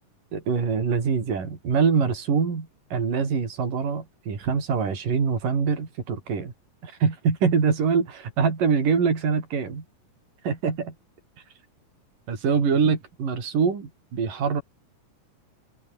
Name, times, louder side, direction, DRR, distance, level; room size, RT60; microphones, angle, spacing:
voice 1, 0.3-6.5 6.8-9.8 10.4-10.9 12.3-14.6, right 5 dB, 70° right, 6.1 m, -24 dB
omnidirectional pair, 3.9 m